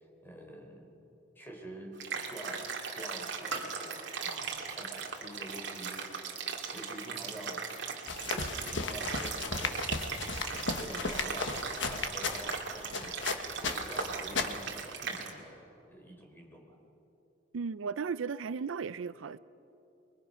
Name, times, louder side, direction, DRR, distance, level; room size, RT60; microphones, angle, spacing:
voice 1, 0.2-0.9 1.3-6.0 6.7-7.7 8.3-10.2 10.5-13.3 13.6-16.8, right 1 dB, 10° left, 4.3 m, -47 dB
sound 1, 2.0-15.3, right 5 dB, 65° right, 2.5 m, -38 dB
sound 2, 8.1-14.8, left 4 dB, 70° left, 1.3 m, -36 dB
voice 2, 17.5-19.4, right 5 dB, 90° right, 0.5 m, -35 dB
28.0 x 22.0 x 5.6 m
head